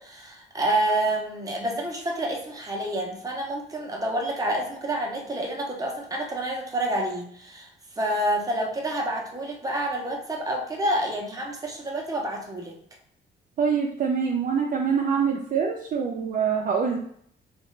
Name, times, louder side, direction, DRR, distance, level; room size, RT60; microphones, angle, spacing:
voice 1, 0.0-7.7 8.0-12.8, right 1 dB, 15° right, 0 dB, 0.8 m, -28 dB
voice 2, 13.6-17.0, right 6 dB, 45° right, 0 dB, 0.5 m, -25 dB
3.2 x 2.4 x 3.1 m, 0.64 s
cardioid pair, 90°, 20 cm